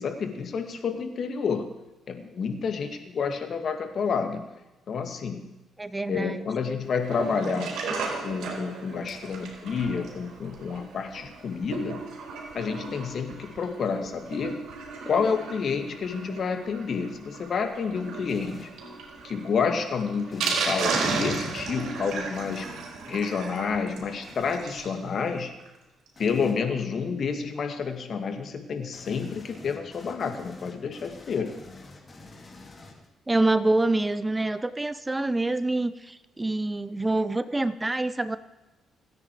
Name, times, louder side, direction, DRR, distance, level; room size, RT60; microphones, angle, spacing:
voice 1, 0.0-1.6 2.1-4.4 4.9-5.5 6.1-7.8 8.2-12.0 12.5-14.6 15.0-18.7 19.2-22.7 23.1-25.5 26.2-31.5, left 5 dB, 55° left, 6 dB, 2.3 m, -29 dB
voice 2, 5.8-6.5 33.3-38.4, right 2 dB, 15° right, 14 dB, 0.7 m, -26 dB
Sink (filling or washing), 6.9-25.0 25.3-25.4 25.6-25.7 26.1-26.2, right 4 dB, 75° right, 4.6 m, -35 dB
sound 1, 18.3-18.8 20.3-20.8 22.3-22.8 24.2-24.7 26.2-26.7 28.9-33.3, left 2 dB, 30° left, 3.0 m, -48 dB
28.0 x 9.7 x 5.0 m, 1.0 s
cardioid pair, 90°, 0 cm